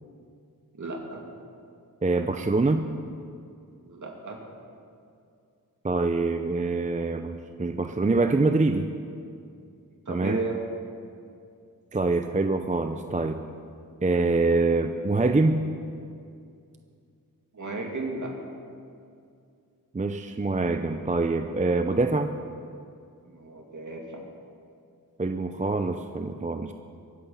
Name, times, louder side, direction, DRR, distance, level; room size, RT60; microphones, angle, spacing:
voice 1, 0.7-1.2 3.8-4.4 10.1-10.6 17.5-18.3 23.3-24.2, right 3 dB, 55° right, 0 dB, 2.5 m, -34 dB
voice 2, 2.0-2.9 5.8-8.9 10.1-10.4 11.9-13.4 14.0-15.6 19.9-22.3 25.2-26.7, right 3 dB, 20° right, 7 dB, 0.6 m, -25 dB
23.5 x 8.1 x 5.6 m, 2.4 s
wide cardioid pair, 75°, 36 cm